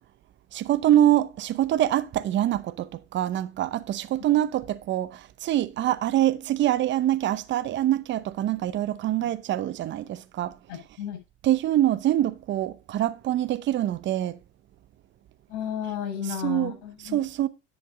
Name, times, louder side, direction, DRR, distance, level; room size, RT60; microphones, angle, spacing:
voice 1, 0.5-10.6 11.4-14.4 16.4-16.7 17.1-17.5, right 12 dB, 35° right, 0.7 m, -25 dB
voice 2, 10.7-11.2 15.5-17.2, left 9 dB, 70° left, 7.2 m, -33 dB
10.5 x 6.8 x 3.9 m
supercardioid pair, 130°, 35 cm